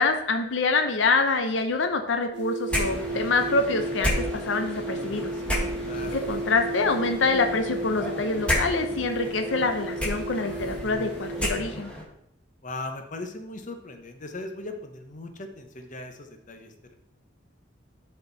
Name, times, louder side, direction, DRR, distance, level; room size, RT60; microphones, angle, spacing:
voice 1, 0.0-5.3 6.1-11.9, left 3 dB, 85° left, 6 dB, 0.7 m, -26 dB
sound 1, 2.3-11.6, right 2 dB, 65° right, 0.8 m, -34 dB
sound 2, 2.7-12.0, equal, 5° left, 1.6 m, -32 dB
voice 2, 5.8-6.2 12.6-16.9, left 2 dB, 45° left, 5 dB, 1.0 m, -38 dB
10.5 x 4.5 x 4.0 m, 0.75 s
head